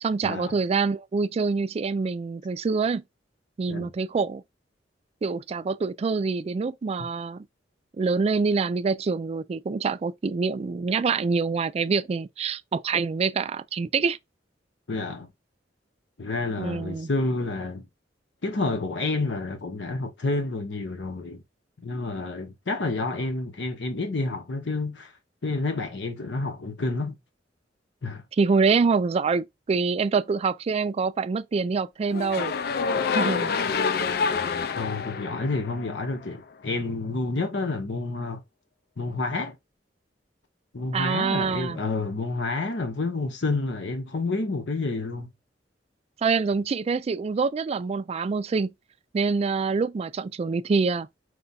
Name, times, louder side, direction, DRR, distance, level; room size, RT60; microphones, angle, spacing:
voice 1, 0.0-3.0 3.6-4.4 5.2-7.5 8.0-14.2 16.6-17.1 28.4-32.5 33.1-33.5 40.9-41.8 46.2-48.7 49.1-51.1, right 4 dB, 35° right, 0.3 m, -25 dB
voice 2, 14.9-15.3 16.2-17.9 18.4-21.4 21.8-25.1 25.4-27.2 28.0-28.2 34.8-38.4 39.0-39.5 40.7-45.3, left 3 dB, 75° left, 0.9 m, -29 dB
sound 1, 32.1-36.3, left 5 dB, 60° left, 0.4 m, -27 dB
4.8 x 2.2 x 4.0 m
head